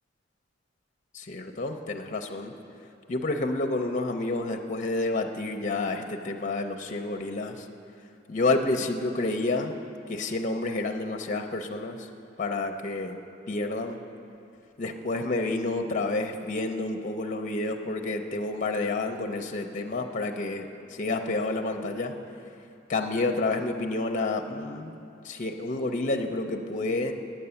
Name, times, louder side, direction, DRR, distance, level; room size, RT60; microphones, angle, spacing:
voice 1, 1.1-2.5 3.1-7.7 8.3-9.7 10.1-12.1 12.4-13.2 13.5-14.0 14.8-22.1 22.9-24.9 25.2-27.1, left 2 dB, 40° left, 5 dB, 0.5 m, -29 dB
9.0 x 8.8 x 6.9 m, 2.6 s
head